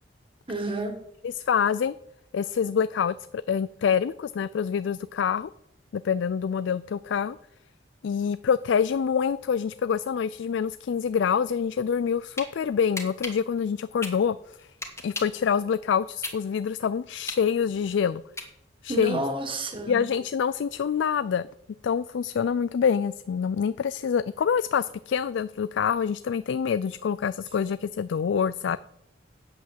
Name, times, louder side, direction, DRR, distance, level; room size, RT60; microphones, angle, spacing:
voice 1, 0.5-1.0 18.9-20.0, right 2 dB, 30° right, 5 dB, 1.8 m, -30 dB
voice 2, 1.2-1.9 2.3-5.5 5.9-7.4 8.0-14.7 15.0-18.2 18.8-19.2 19.9-21.5 21.8-28.8, left 7 dB, 70° left, 15 dB, 0.3 m, -26 dB
sound 1, 12.1-12.5 12.9-15.4 15.8-18.9, left 2 dB, 15° left, 1.6 m, -36 dB
8.8 x 8.0 x 7.4 m, 0.79 s
head